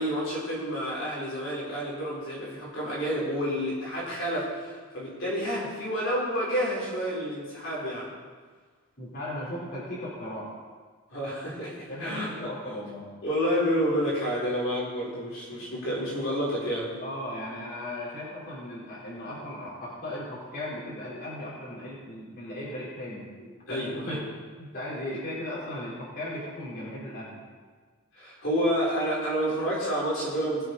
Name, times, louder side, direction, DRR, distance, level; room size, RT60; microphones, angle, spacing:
voice 1, 0.0-8.1 11.1-12.3 13.2-16.9 23.7-24.2 28.1-30.6, equal, 65° left, -6 dB, 4.4 m, -29 dB
voice 2, 9.0-10.5 11.9-13.1 17.0-23.3 23.7-24.2 24.6-27.4, left 1 dB, 45° left, -8 dB, 4.3 m, -37 dB
20.5 x 7.8 x 4.2 m, 1.5 s
head